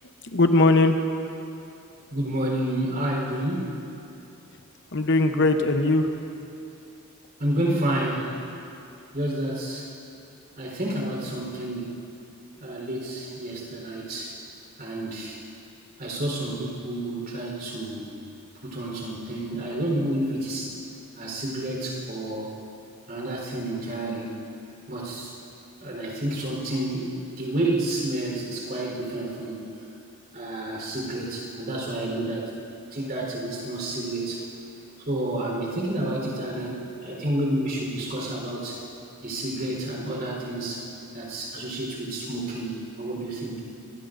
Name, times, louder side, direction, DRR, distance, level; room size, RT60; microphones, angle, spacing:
voice 1, 0.2-1.0 4.9-6.1 6.4-6.5, left 2 dB, 55° left, 6 dB, 0.9 m, -20 dB
voice 2, 2.1-3.7 7.4-8.4 9.1-9.9 10.6-12.0 12.6-14.4 14.8-15.4 16.0-18.1 18.6-20.8 21.2-22.5 23.1-24.4 24.9-25.4 25.8-29.7 30.3-32.5 32.9-34.5 35.1-38.8 39.2-43.6, right 1 dB, 45° right, -2 dB, 4.1 m, -30 dB
26.0 x 19.5 x 2.6 m, 2.7 s
head